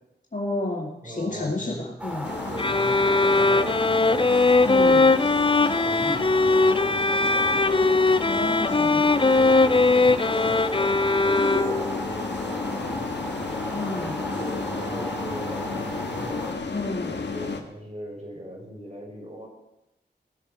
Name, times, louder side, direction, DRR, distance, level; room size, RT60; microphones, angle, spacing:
voice 1, 0.3-2.3 4.6-5.1 8.3-9.1 13.7-14.2 16.7-17.1, left 2 dB, 45° left, -1 dB, 2.1 m, -30 dB
voice 2, 1.0-1.9 2.5-5.2 5.8-7.7 8.1-8.6 9.1-13.4 14.1-16.5 17.0-19.5, equal, 35° right, 0 dB, 5.8 m, -39 dB
sound 1, 2.0-16.5, equal, 5° right, 3.4 m, -35 dB
sound 2, 2.2-17.6, left 4 dB, 85° left, 1.6 m, -33 dB
sound 3, 2.6-12.0, left 3 dB, 30° left, 0.6 m, -20 dB
19.5 x 7.3 x 7.6 m, 0.90 s
wide cardioid pair, 65°, 18 cm